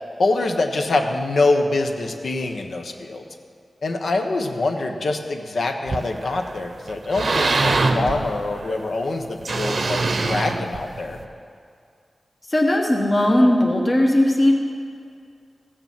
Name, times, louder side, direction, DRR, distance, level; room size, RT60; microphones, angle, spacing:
voice 1, 0.2-3.2 3.8-11.2, left 2 dB, 70° left, 4 dB, 1.1 m, -24 dB
sound 1, 5.9-6.5 6.9-8.7 9.4-11.2, right 3 dB, 60° right, 0.8 m, -23 dB
voice 2, 12.5-14.5, left 1 dB, 35° left, 0 dB, 1.2 m, -17 dB
15.0 x 6.9 x 7.5 m, 2.3 s
wide cardioid pair, 80°, 0 cm